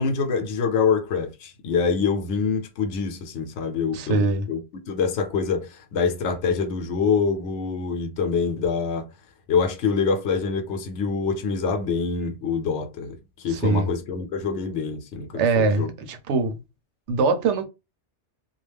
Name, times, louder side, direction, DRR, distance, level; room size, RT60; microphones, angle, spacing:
voice 1, 0.0-4.6 4.9-9.1 9.5-15.9, left 5 dB, 80° left, 0.9 m, -25 dB
voice 2, 3.9-4.4 13.5-13.9 15.3-16.6 17.1-17.7, right 3 dB, 80° right, 0.9 m, -22 dB
2.4 x 2.1 x 3.3 m
omnidirectional pair, 1.2 m